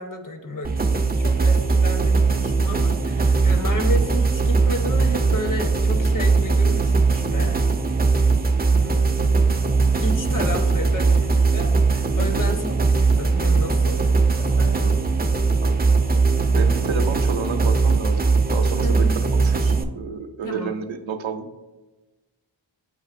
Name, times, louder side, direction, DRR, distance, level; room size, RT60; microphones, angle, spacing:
voice 1, 0.0-7.6 8.7-9.2 10.0-14.1 14.4-14.9 18.8-19.1 20.4-20.7, left 1 dB, 45° left, 4 dB, 0.8 m, -32 dB
sound 1, 0.6-19.8, right 4 dB, 20° right, 0.4 m, -20 dB
voice 2, 14.5-14.9 15.6-16.0 16.6-18.2 18.5-21.6, right 5 dB, 85° right, 7 dB, 0.5 m, -31 dB
7.8 x 2.6 x 2.5 m, 1.1 s
wide cardioid pair, 45°, 46 cm